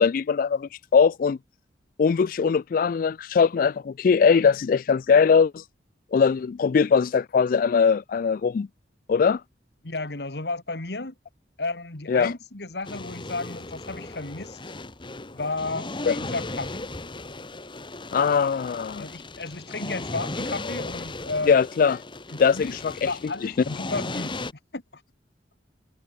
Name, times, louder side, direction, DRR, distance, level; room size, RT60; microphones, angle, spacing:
voice 1, 0.0-1.4 2.0-5.6 6.1-8.7 9.1-9.4 12.1-12.3 16.1-16.2 18.1-19.1 21.5-22.0 22.4-22.9, left 6 dB, 50° left, 0.3 m, -21 dB
voice 2, 9.8-11.1 11.6-14.6 15.3-15.9 16.2-16.9 19.0-21.6 22.3-22.8 23.1-24.5 24.7-25.0, left 3 dB, 65° left, 1.9 m, -33 dB
sound 1, 12.8-24.5, left 2 dB, 30° left, 1.6 m, -36 dB
head